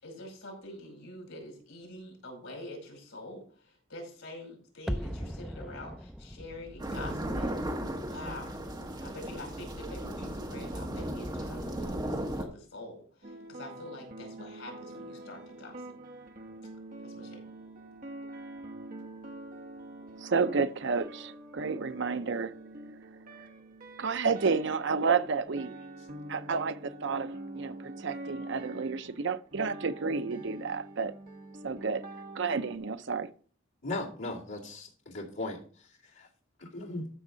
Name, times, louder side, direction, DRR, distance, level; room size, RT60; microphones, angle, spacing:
voice 1, 0.0-7.5 8.1-8.6 9.0-15.9 17.0-17.4, left 1 dB, 85° left, 5.1 m, -46 dB
sound 1, 4.9-9.8 10.1-10.2, equal, ahead, 0.4 m, -41 dB
sound 2, 6.8-12.5, right 1 dB, 20° right, 1.3 m, -36 dB
sound 3, 13.2-32.8, right 1 dB, 45° right, 1.0 m, -45 dB
voice 2, 20.2-22.5 24.0-25.8 26.3-31.1 31.6-32.1 32.4-33.3, right 5 dB, 60° right, 0.6 m, -30 dB
voice 3, 33.8-35.6 36.2-36.3 36.6-37.1, left 2 dB, 70° left, 2.3 m, -37 dB
13.5 x 6.4 x 3.9 m
head